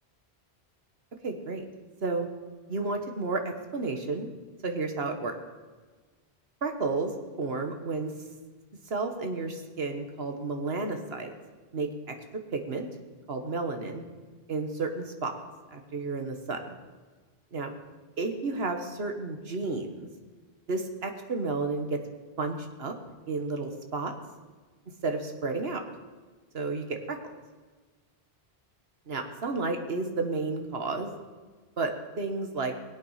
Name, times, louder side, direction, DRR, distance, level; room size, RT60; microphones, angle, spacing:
voice 1, 1.2-1.7 2.0-2.3 2.7-4.3 4.6-5.4 6.6-8.1 8.9-11.3 11.7-12.1 12.5-12.9 13.3-14.0 14.5-15.3 15.7-16.7 17.5-17.7 18.2-20.1 20.7-22.0 22.4-23.0 23.3-24.1 25.0-25.8 26.5-27.2 29.1-31.1 31.8-32.8, right 3 dB, 70° right, 5 dB, 1.7 m, -32 dB
21.5 x 8.3 x 5.7 m, 1.4 s
omnidirectional pair, 1.1 m